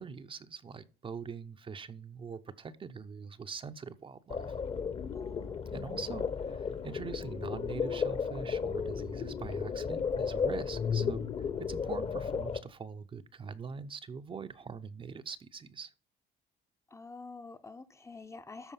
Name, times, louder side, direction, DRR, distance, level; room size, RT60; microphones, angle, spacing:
voice 1, 0.0-4.5 5.7-15.9, right 5 dB, 30° right, 0.6 m, -43 dB
sound 1, 4.3-12.6, left 6 dB, 35° left, 1.0 m, -34 dB
voice 2, 5.1-5.6 16.9-18.7, left 3 dB, 15° left, 0.7 m, -48 dB
13.0 x 4.6 x 5.6 m
cardioid pair, 110°, 17 cm